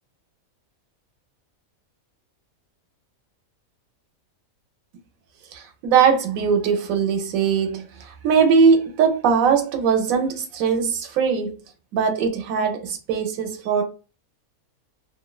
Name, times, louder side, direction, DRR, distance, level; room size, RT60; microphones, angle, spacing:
voice 1, 5.5-11.5 11.9-13.8, right 6 dB, 75° right, 1.0 m, -20 dB
2.5 x 2.1 x 2.2 m
omnidirectional pair, 1.5 m